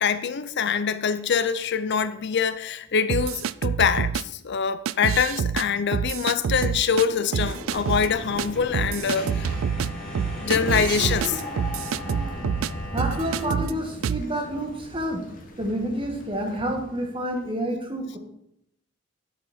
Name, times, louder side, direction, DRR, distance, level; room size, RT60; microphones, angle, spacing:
voice 1, 0.0-9.5 10.4-11.4, left 6 dB, 60° left, 0.6 m, -24 dB
sound 1, 3.1-4.2 4.9-5.6 5.9-7.1 7.3-8.1 8.4-8.5 8.7-12.7 13.0-13.7 14.0-14.3, right 7 dB, 90° right, 0.4 m, -27 dB
sound 2, 6.6-13.5, left 1 dB, 5° left, 3.6 m, -38 dB
Thunder, 7.7-17.4, equal, 45° left, 1.9 m, -38 dB
voice 2, 12.9-15.2 15.6-18.2, right 1 dB, 25° right, 1.8 m, -29 dB
9.7 x 8.4 x 4.4 m
head